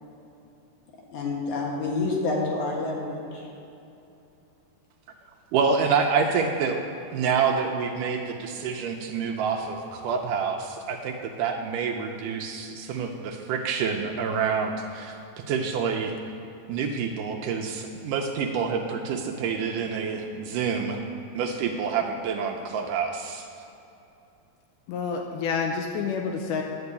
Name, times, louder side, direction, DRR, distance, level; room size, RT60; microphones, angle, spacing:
voice 1, 1.1-3.5, left 3 dB, 60° left, -2 dB, 2.6 m, -28 dB
voice 2, 5.5-6.8 7.1-15.1 15.5-16.1 16.7-21.0 21.3-23.5, right 6 dB, 80° right, 2 dB, 2.0 m, -27 dB
voice 3, 24.9-26.6, left 5 dB, 80° left, 2 dB, 2.0 m, -28 dB
10.5 x 5.3 x 8.1 m, 2.8 s
omnidirectional pair, 4.1 m